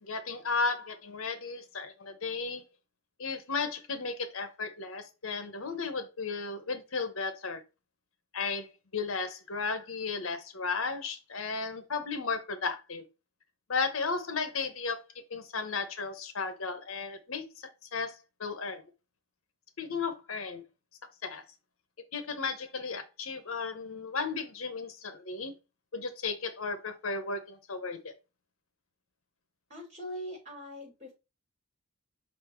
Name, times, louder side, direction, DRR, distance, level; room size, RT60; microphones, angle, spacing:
voice 1, 0.0-2.6 3.2-7.6 8.3-13.0 13.7-15.0 15.3-18.8 19.8-20.6 21.2-21.4 22.1-25.5 25.9-28.1, left 4 dB, 75° left, 1.1 m, -34 dB
voice 2, 29.7-31.1, equal, 35° right, 4.3 m, -41 dB
5.7 x 4.3 x 4.4 m
head